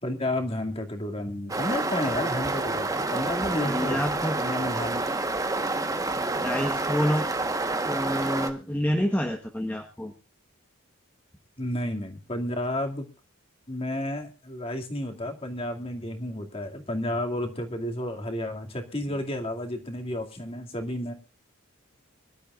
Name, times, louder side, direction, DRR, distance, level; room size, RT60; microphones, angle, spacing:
voice 1, 0.0-4.0 4.4-5.0 11.6-13.1 13.7-21.1, left 1 dB, 25° left, 3 dB, 2.4 m, -31 dB
sound 1, 1.5-8.5, right 2 dB, 15° right, 1.2 m, -28 dB
voice 2, 3.6-4.4 6.1-7.3 7.8-10.1, equal, 10° left, 3 dB, 1.3 m, -28 dB
24.5 x 12.5 x 2.5 m, 0.29 s
head